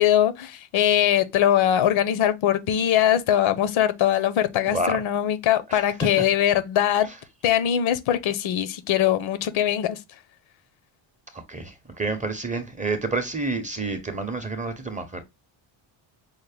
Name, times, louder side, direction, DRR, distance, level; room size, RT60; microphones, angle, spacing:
voice 1, 0.0-7.1 7.4-10.0, left 11 dB, 70° left, 0.8 m, -21 dB
voice 2, 4.7-5.0 5.7-5.9 7.1-7.2 11.3-15.2, right 2 dB, 15° right, 0.7 m, -29 dB
5.5 x 2.1 x 3.3 m
cardioid pair, 120°, 49 cm